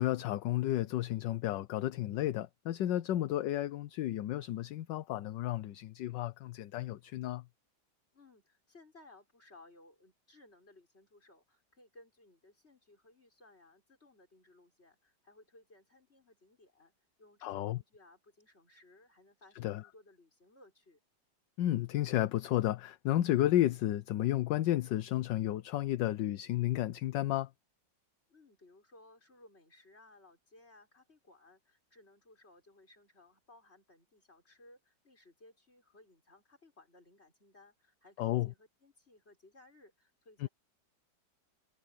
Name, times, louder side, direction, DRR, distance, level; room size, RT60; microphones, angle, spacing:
voice 1, 0.0-7.4 17.4-17.8 19.6-19.8 21.6-27.5 38.2-38.5 40.4-40.5, left 14 dB, 75° left, 1.3 m, -32 dB
voice 2, 8.1-16.9 17.2-21.0 28.3-40.5, left 2 dB, 30° left, 6.6 m, -61 dB
omnidirectional pair, 2.0 m